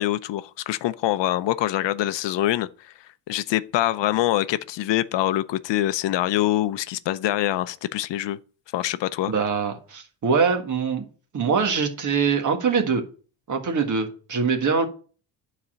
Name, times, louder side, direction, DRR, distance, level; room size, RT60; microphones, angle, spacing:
voice 1, 0.0-2.7 3.3-8.4 8.7-9.3, left 14 dB, 65° left, 0.6 m, -24 dB
voice 2, 9.3-11.0 11.3-13.0 13.5-14.9, right 5 dB, 40° right, 1.6 m, -23 dB
11.5 x 4.2 x 6.3 m
cardioid pair, 145°, 48 cm